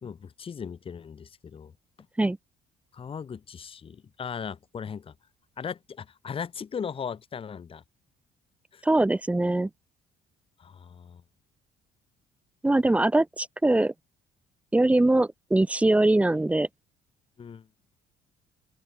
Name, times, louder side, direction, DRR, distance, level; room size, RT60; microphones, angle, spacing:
voice 1, 0.0-1.7 2.9-5.1 5.6-7.8 8.7-8.8 10.6-11.2 17.4-17.7, left 7 dB, 35° left, 1.2 m, -38 dB
voice 2, 8.8-9.7 12.6-13.9 14.7-16.7, right 2 dB, 10° right, 0.4 m, -22 dB
open air
cardioid pair, 110°, 17 cm